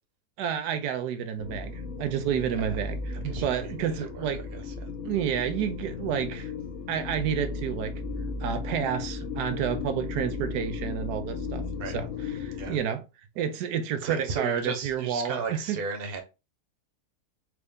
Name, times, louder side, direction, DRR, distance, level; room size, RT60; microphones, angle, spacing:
voice 1, 0.4-4.4 5.0-6.5 6.9-8.0 8.4-11.7 11.9-12.1 12.4-13.0 13.4-15.8, right 8 dB, 90° right, 1.2 m, -30 dB
sound 1, 1.4-12.8, left 4 dB, 60° left, 0.9 m, -35 dB
voice 2, 3.2-4.9 11.8-12.0 12.6-12.8 14.0-16.2, right 4 dB, 45° right, 1.0 m, -35 dB
4.5 x 2.5 x 3.5 m
omnidirectional pair, 1.7 m